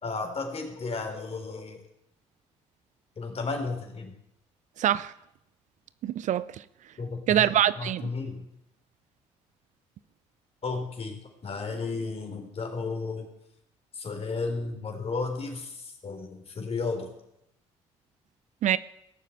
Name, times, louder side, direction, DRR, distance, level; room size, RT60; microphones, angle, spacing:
voice 1, 0.0-1.8 3.2-4.1 7.0-7.5 7.8-8.4 10.6-13.2 14.0-15.7 16.0-16.3 16.6-17.1, left 4 dB, 45° left, 4 dB, 3.8 m, -33 dB
voice 2, 4.8-5.1 6.0-6.4 7.3-8.1 18.6-18.8, right 11 dB, 55° right, 18 dB, 0.5 m, -24 dB
17.0 x 7.5 x 8.0 m, 0.82 s
hypercardioid pair, 50°, 15 cm